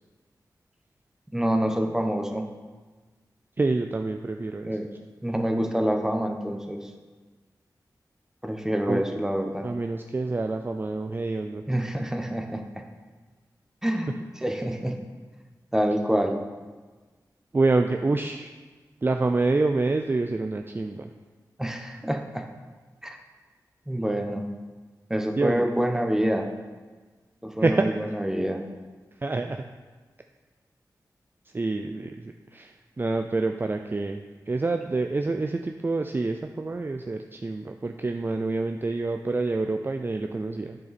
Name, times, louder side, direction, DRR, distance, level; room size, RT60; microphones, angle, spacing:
voice 1, 1.3-2.5 4.6-4.9 5.2-6.8 8.4-9.7 11.7-12.6 13.8-14.1 14.4-15.0 15.7-16.4 21.6-22.4 23.0-23.2 23.9-24.5 25.1-26.5 27.4-28.6, equal, 5° right, 4 dB, 1.0 m, -26 dB
voice 2, 3.6-4.8 8.9-9.0 9.6-11.6 17.5-18.5 19.0-21.1 25.4-25.7 27.6-27.9 29.2-29.6 31.5-40.8, right 3 dB, 30° right, 5 dB, 0.4 m, -27 dB
8.4 x 6.7 x 4.2 m, 1.4 s
wide cardioid pair, 75°, 7 cm